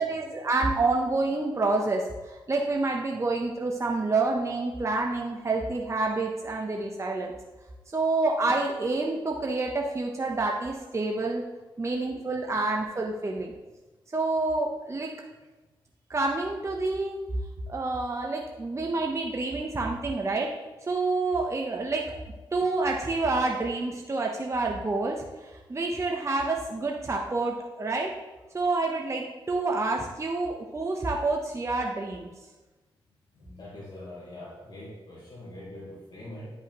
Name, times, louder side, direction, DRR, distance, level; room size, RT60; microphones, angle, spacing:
voice 1, 0.0-7.3 7.9-11.4 11.8-13.5 14.1-15.1 16.1-17.2 17.7-20.5 20.8-22.2 22.5-28.1 28.5-32.3, right 3 dB, 30° right, 0 dB, 0.9 m, -28 dB
voice 2, 33.3-36.5, left 1 dB, 50° left, -6 dB, 2.1 m, -43 dB
10.0 x 5.5 x 3.0 m, 1.2 s
cardioid pair, 55°, 9 cm